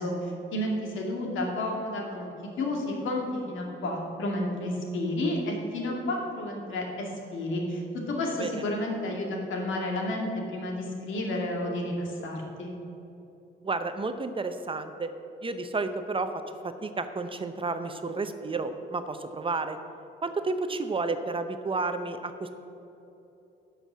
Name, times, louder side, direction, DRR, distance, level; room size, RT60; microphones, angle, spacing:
voice 1, 0.0-2.3 2.6-12.7, left 1 dB, 75° left, 0 dB, 2.2 m, -31 dB
voice 2, 13.6-15.1 15.4-16.3 16.6-19.8 20.2-22.5, right 3 dB, 25° right, 9 dB, 0.7 m, -31 dB
11.5 x 5.7 x 7.4 m, 3.0 s
cardioid pair, 90°, 20 cm